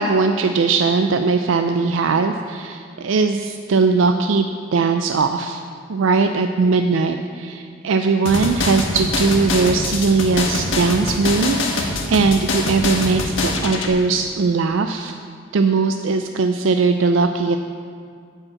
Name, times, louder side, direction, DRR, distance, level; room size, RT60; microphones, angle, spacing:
voice 1, 0.0-5.6 5.9-15.1 15.5-17.6, right 4 dB, 85° right, 6 dB, 0.4 m, -19 dB
sound 1, 8.3-13.9, left 2 dB, 80° left, 1.2 m, -24 dB
9.6 x 5.4 x 7.4 m, 2.1 s
head